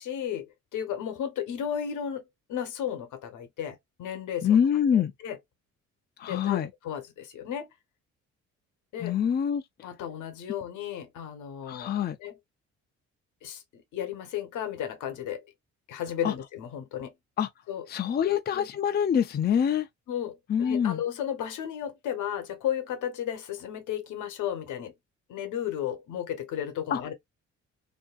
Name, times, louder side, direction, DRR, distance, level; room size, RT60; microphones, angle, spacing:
voice 1, 0.0-2.2 2.5-4.6 4.9-5.4 6.2-7.7 8.9-9.1 9.8-12.4 13.4-15.5 15.9-17.1 17.7-17.9 18.2-18.7 20.1-24.9 25.3-27.1, left 9 dB, 80° left, 0.9 m, -34 dB
voice 2, 4.4-5.1 6.2-6.7 9.0-9.6 11.7-12.2 16.2-16.3 17.4-17.5 17.9-19.9 20.5-21.0 26.9-27.0, left 8 dB, 35° left, 0.4 m, -25 dB
2.7 x 2.6 x 2.3 m
cardioid pair, 90°, 30 cm